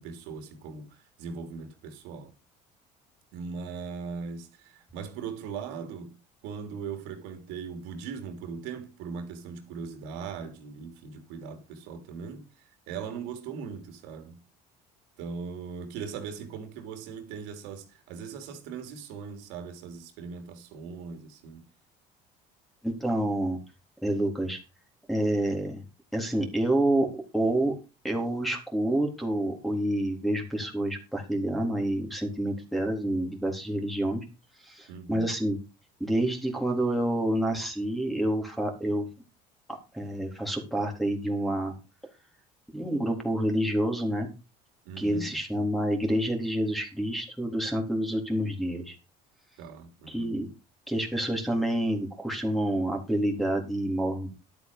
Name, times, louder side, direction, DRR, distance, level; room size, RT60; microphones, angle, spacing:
voice 1, 0.0-2.3 3.3-6.1 6.4-12.4 12.9-14.4 15.2-21.6 34.9-35.3 44.8-45.4 49.6-50.3, right 6 dB, 85° right, 3.4 m, -39 dB
voice 2, 22.8-23.6 24.0-24.6 25.1-25.8 26.1-27.1 27.3-27.7 28.0-34.3 34.6-35.6 36.0-39.1 39.9-41.7 42.7-44.3 45.0-49.0 50.1-50.5 50.9-54.3, right 1 dB, ahead, 3.7 m, -28 dB
12.0 x 8.2 x 5.3 m
cardioid pair, 120°, 17 cm